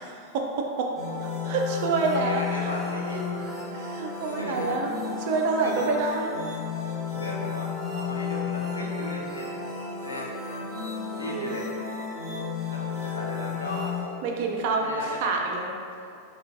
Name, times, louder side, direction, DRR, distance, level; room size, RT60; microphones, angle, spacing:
voice 1, 0.0-0.9 1.4-2.7 3.7-4.9 5.2-6.3 11.2-11.6 14.2-15.7, right 3 dB, 50° right, 1 dB, 0.3 m, -27 dB
sound 1, 1.0-14.0, left 5 dB, 15° right, 0.9 m, -33 dB
voice 2, 2.0-3.4 4.4-4.8 5.6-6.0 7.2-7.7 7.9-9.5 10.0-10.3 11.2-11.7 12.7-13.9 14.7-15.4, left 1 dB, 80° left, -2 dB, 0.4 m, -36 dB
3.1 x 2.4 x 2.4 m, 2.4 s
figure-of-eight pair, 90°, 0 cm